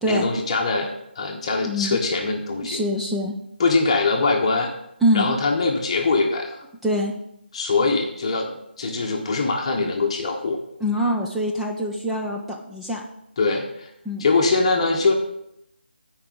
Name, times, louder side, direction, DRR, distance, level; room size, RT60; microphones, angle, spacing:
voice 1, 0.0-2.8 3.6-4.7 5.1-6.6 7.5-8.5 8.8-10.6 13.4-13.9 14.2-15.1, left 3 dB, 30° left, 2 dB, 1.0 m, -22 dB
voice 2, 1.7-2.0 2.6-3.3 5.0-5.3 6.8-7.1 10.8-13.0 14.1-14.3, equal, ahead, -3 dB, 0.3 m, -24 dB
14.5 x 4.9 x 3.8 m, 0.80 s
figure-of-eight pair, 165°, 6 cm